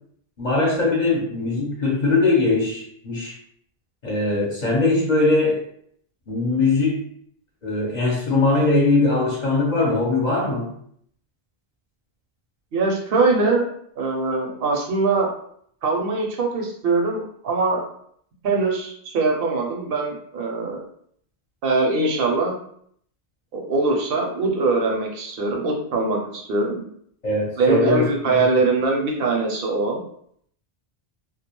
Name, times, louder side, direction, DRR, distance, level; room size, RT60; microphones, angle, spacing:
voice 1, 0.4-3.4 4.0-5.6 6.3-7.0 7.6-10.7 27.2-28.5, left 3 dB, 50° left, -3 dB, 0.8 m, -21 dB
voice 2, 12.7-13.7 14.0-15.3 15.8-17.9 18.4-20.8 21.6-22.6 23.5-26.8 27.6-30.0, right 3 dB, 70° right, 0 dB, 0.7 m, -22 dB
2.3 x 2.2 x 2.8 m, 0.65 s
omnidirectional pair, 1.1 m